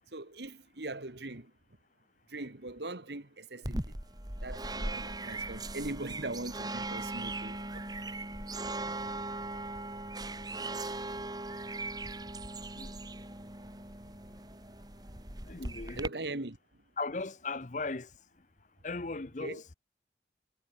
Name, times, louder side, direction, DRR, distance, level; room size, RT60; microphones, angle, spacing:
voice 1, 0.1-1.5 2.3-4.0 4.4-7.8 16.0-16.6 19.4-19.6, right 2 dB, 75° right, 2.0 m, -40 dB
sound 1, 3.6-16.1, right 2 dB, 20° right, 3.5 m, -39 dB
voice 2, 15.5-16.0 17.0-18.1 18.8-19.7, left 3 dB, 45° left, 0.8 m, -37 dB
head